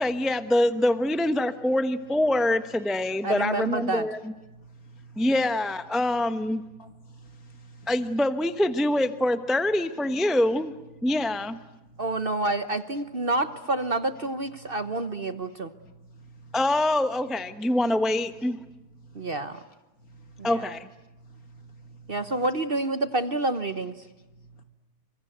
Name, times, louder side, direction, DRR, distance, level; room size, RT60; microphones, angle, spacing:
voice 1, 0.0-4.3 5.2-6.6 7.9-10.8 11.0-11.6 16.5-18.6 20.4-20.9, left 1 dB, ahead, 0.8 m, -25 dB
voice 2, 1.5-1.8 2.1-3.8 4.4-5.5 5.9-8.1 9.1-9.4 10.0-10.5 10.9-12.3 12.9-13.3 14.4-17.2 17.6-18.1 18.4-20.8 21.1-22.5 23.0-23.1 24.0-24.6, right 3 dB, 60° left, 2.9 m, -52 dB
voice 3, 3.2-4.1 12.0-15.7 19.1-19.6 20.4-20.7 22.1-24.0, right 2 dB, 40° right, 1.1 m, -28 dB
29.0 x 25.0 x 8.0 m
omnidirectional pair, 1.7 m